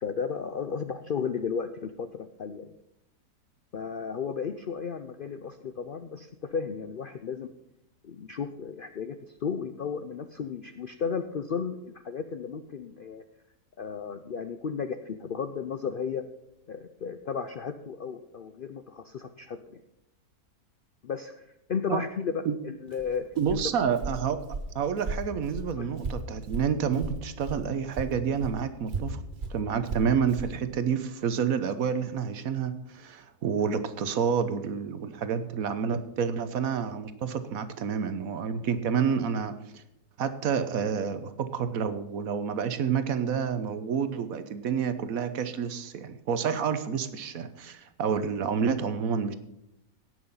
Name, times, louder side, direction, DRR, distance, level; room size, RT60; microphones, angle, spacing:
voice 1, 0.0-2.7 3.7-7.5 8.0-13.2 13.8-16.3 16.7-19.8 21.0-21.4 21.7-23.6 25.8-25.9, left 6 dB, 70° left, 9 dB, 0.5 m, -34 dB
Walk footsteps, 22.9-27.7 27.9-30.6, right 3 dB, 35° right, 1.1 m, -36 dB
voice 2, 23.4-24.4 24.7-29.2 29.5-39.8 40.2-49.3, right 7 dB, 65° right, 11 dB, 1.2 m, -29 dB
17.0 x 6.2 x 5.6 m, 0.81 s
omnidirectional pair, 1.6 m